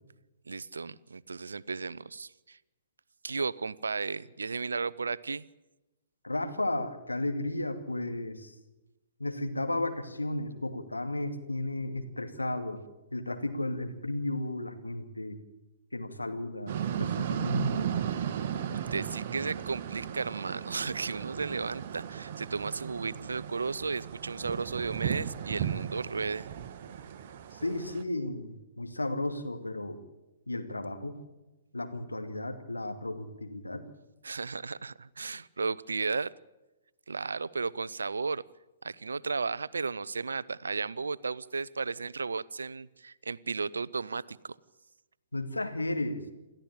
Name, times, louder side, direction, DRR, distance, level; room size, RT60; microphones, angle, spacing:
voice 1, 0.5-2.6 3.2-5.4 18.1-26.5 34.2-36.3 37.1-38.4 38.8-44.6, right 4 dB, 70° right, 19 dB, 0.6 m, -34 dB
voice 2, 6.2-8.5 9.2-12.8 13.1-15.4 15.9-17.9 27.6-30.0 30.5-31.2 31.7-33.8 45.3-46.2, left 2 dB, 85° left, 6 dB, 2.4 m, -34 dB
sound 1, 16.7-28.0, right 9 dB, 45° right, 1.3 m, -35 dB
28.0 x 13.5 x 8.9 m, 1.1 s
figure-of-eight pair, 120°, 0 cm